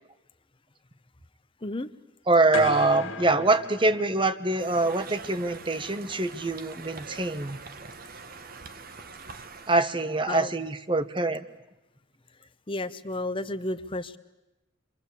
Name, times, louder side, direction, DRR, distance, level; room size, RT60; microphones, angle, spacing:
voice 1, 2.3-7.6 9.7-11.4, right 2 dB, 25° right, 12 dB, 1.1 m, -24 dB
sound 1, 2.5-4.6, left 3 dB, 75° left, 1.9 m, -36 dB
Conversation, 4.6-9.8, right 4 dB, 50° right, 1.2 m, -44 dB
voice 2, 12.7-14.2, left 2 dB, 25° left, 12 dB, 0.9 m, -32 dB
30.0 x 24.0 x 8.3 m, 1.0 s
head